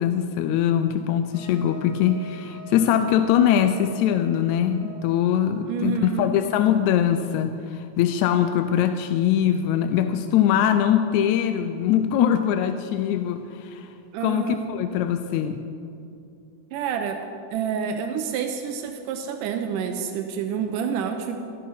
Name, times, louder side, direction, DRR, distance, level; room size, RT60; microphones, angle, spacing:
voice 1, 0.0-13.9 14.2-15.6, left 9 dB, 80° left, 8 dB, 1.7 m, -22 dB
Wind instrument woodwind instrument, 1.3-5.2, right 4 dB, 20° right, 3.0 m, -44 dB
voice 2, 5.7-6.3 14.1-14.7 16.7-17.2 17.5-21.4, right 7 dB, 85° right, 6 dB, 2.3 m, -28 dB
13.0 x 10.5 x 5.6 m, 2.5 s
omnidirectional pair, 3.7 m